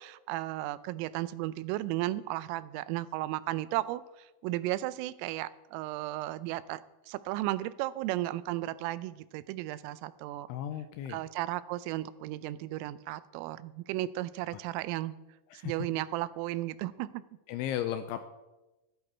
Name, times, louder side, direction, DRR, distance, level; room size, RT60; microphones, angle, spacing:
voice 1, 0.0-6.8 7.1-10.5 11.1-15.1 15.6-17.2, right 16 dB, 85° right, 16 dB, 3.2 m, -34 dB
voice 2, 10.5-11.2 14.5-14.6 15.5-15.7 17.5-18.2, left 11 dB, 85° left, 9 dB, 2.8 m, -35 dB
15.5 x 10.5 x 4.3 m, 1.0 s
omnidirectional pair, 5.9 m